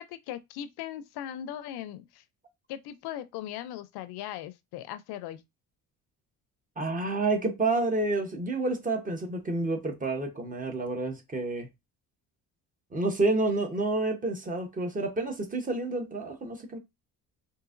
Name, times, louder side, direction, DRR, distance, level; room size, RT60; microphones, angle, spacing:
voice 1, 0.1-2.2 2.7-5.4, left 11 dB, 85° left, 0.5 m, -39 dB
voice 2, 6.8-11.7 12.9-16.8, right 2 dB, 20° right, 0.9 m, -29 dB
3.8 x 2.7 x 2.5 m
cardioid pair, 125°, 38 cm